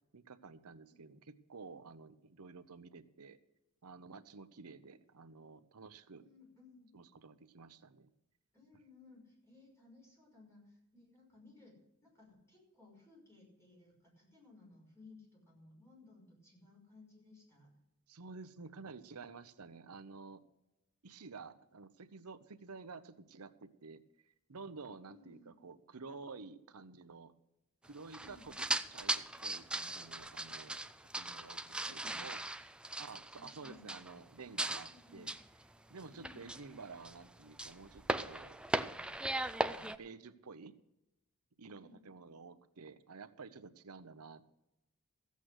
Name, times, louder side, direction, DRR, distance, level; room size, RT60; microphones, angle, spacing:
voice 1, 0.1-3.4 3.8-6.2 6.9-8.1 18.1-20.4 21.0-24.0 24.5-27.3 27.8-32.4 33.0-35.3 35.9-38.6 39.7-40.8 41.6-44.5, right 4 dB, 80° right, 12 dB, 0.8 m, -51 dB
voice 2, 5.2-5.6 6.2-6.9 8.5-11.8 12.0-17.8 25.0-25.5 28.2-28.5 31.6-32.3 33.3-33.9 34.8-35.2 36.1-36.4 41.8-42.0, left 3 dB, 15° left, -2 dB, 5.7 m, -60 dB
sound 1, 28.1-34.3 34.6-34.9 35.3-35.6 36.0-37.3 37.5-40.0, right 1 dB, 5° right, 0.4 m, -38 dB
15.0 x 8.3 x 6.4 m, 0.89 s
head